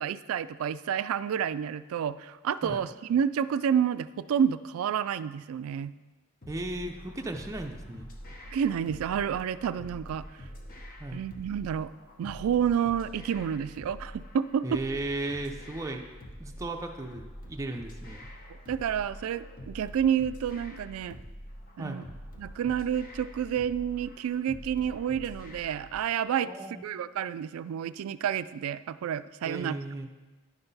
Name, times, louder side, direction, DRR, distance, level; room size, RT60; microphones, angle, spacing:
voice 1, 0.0-5.9 8.5-10.2 11.1-11.9 12.2-14.8 18.7-21.2 21.8-22.0 22.4-29.8, right 8 dB, 75° right, 16 dB, 0.3 m, -29 dB
sound 1, 6.4-26.0, equal, 40° left, 1.0 m, -45 dB
voice 2, 6.5-8.1 11.0-11.2 14.6-16.0 16.4-18.3 21.8-22.0 26.4-26.8 29.4-30.1, right 2 dB, 15° right, 2 dB, 0.5 m, -36 dB
10.5 x 5.8 x 4.1 m, 1.2 s
head